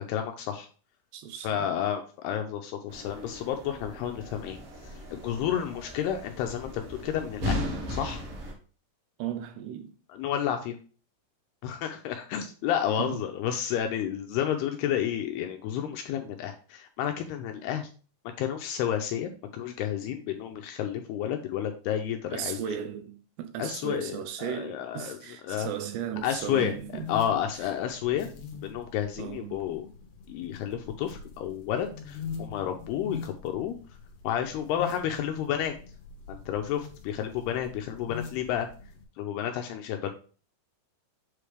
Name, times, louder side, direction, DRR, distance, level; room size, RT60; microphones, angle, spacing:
voice 1, 0.1-0.7 1.4-7.6 7.9-8.2 10.1-10.8 11.6-17.9 18.4-22.6 23.6-25.2 25.4-25.7 26.2-26.7 27.1-28.3 28.6-29.9 30.3-33.8 34.2-35.7 36.3-38.7 39.2-40.1, left 10 dB, 80° left, 2.4 m, -31 dB
voice 2, 1.1-1.7 9.2-9.9 13.0-13.2 22.3-27.1 27.6-27.7 29.2-29.6, right 9 dB, 80° right, 2.7 m, -36 dB
sound 1, 2.9-8.5, left 1 dB, 55° right, 1.7 m, -37 dB
sound 2, 26.2-39.0, left 6 dB, 65° left, 2.3 m, -43 dB
7.6 x 3.3 x 4.9 m
omnidirectional pair, 5.1 m